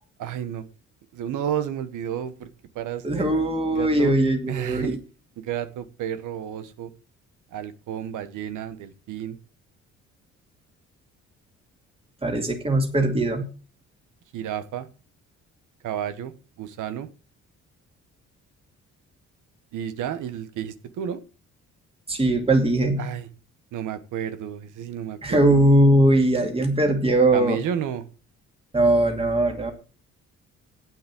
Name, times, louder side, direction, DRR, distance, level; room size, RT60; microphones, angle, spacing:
voice 1, 0.2-0.6 1.1-2.5 2.7-3.3 3.7-4.1 4.5-5.0 5.4-6.9 7.5-9.4 14.3-14.9 15.8-16.3 16.6-17.1 19.7-21.2 23.0-23.3 23.7-25.5 27.3-28.0, right 9 dB, 85° right, 11 dB, 1.3 m, -31 dB
voice 2, 3.0-5.0 12.2-13.4 22.1-23.0 25.2-27.6 28.7-29.7, right 1 dB, 20° right, 3 dB, 2.4 m, -20 dB
8.9 x 7.2 x 7.6 m, 0.36 s
cardioid pair, 90°, 30 cm